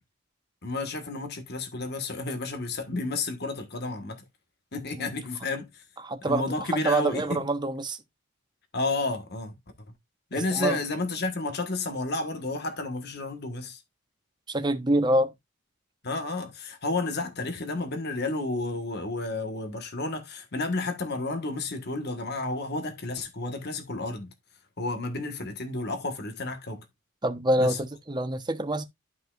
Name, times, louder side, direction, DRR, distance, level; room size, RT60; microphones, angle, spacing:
voice 1, 0.6-4.2 4.7-5.8 6.2-7.4 8.7-9.6 10.3-13.8 16.0-24.3 24.8-26.8 27.6-27.8, left 3 dB, 50° left, 1.5 m, -31 dB
voice 2, 6.0-8.0 10.3-10.8 14.5-15.3 27.2-28.9, right 1 dB, 20° right, 1.0 m, -26 dB
12.5 x 5.5 x 2.5 m
head